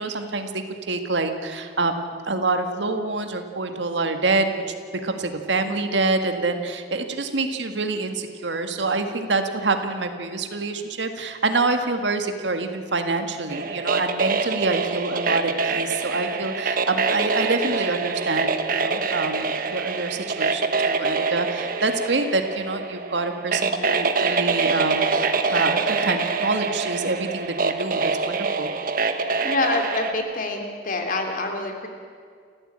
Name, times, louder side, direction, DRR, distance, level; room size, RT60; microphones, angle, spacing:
voice 1, 0.0-4.4 5.0-25.2 25.5-28.7, right 3 dB, 85° right, 6 dB, 1.8 m, -26 dB
sound 1, 13.5-30.1, right 4 dB, 50° right, 1.3 m, -25 dB
voice 2, 29.4-31.9, left 2 dB, 50° left, 3 dB, 3.1 m, -26 dB
29.5 x 14.0 x 8.8 m, 2.2 s
head